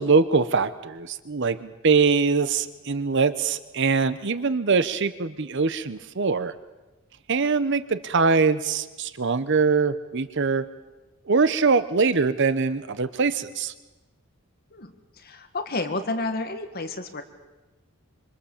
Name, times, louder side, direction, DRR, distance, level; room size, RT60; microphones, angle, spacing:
voice 1, 0.0-6.5 7.3-10.6 11.3-13.7, right 4 dB, 60° right, 13 dB, 0.9 m, -23 dB
voice 2, 14.7-17.2, left 2 dB, 45° left, 7 dB, 1.8 m, -31 dB
26.5 x 25.5 x 7.3 m, 1.1 s
head